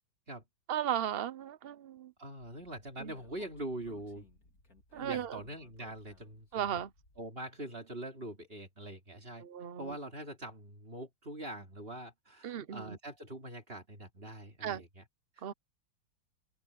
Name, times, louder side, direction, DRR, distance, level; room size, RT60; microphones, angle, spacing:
voice 1, 0.7-2.1 3.0-3.1 4.9-5.4 6.5-6.9 9.4-10.0 12.4-13.0 14.6-14.8 15.4-15.5, right 9 dB, 60° right, 0.6 m, -36 dB
voice 2, 2.2-4.3 4.9-6.8 7.2-9.5 9.8-15.0 15.4-15.5, right 1 dB, 30° right, 3.3 m, -43 dB
Speech, 3.1-7.3, left 2 dB, 45° left, 4.3 m, -62 dB
omnidirectional pair, 2.1 m